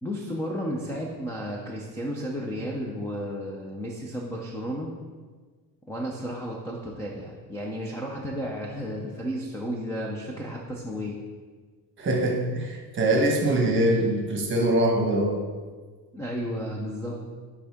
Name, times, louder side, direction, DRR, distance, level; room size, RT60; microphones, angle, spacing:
voice 1, 0.0-4.9 5.9-11.2 16.1-17.2, equal, 5° left, -2 dB, 0.4 m, -33 dB
voice 2, 12.0-15.4, right 1 dB, 30° right, 0 dB, 1.1 m, -23 dB
9.3 x 3.7 x 3.5 m, 1.5 s
cardioid pair, 160°, 42 cm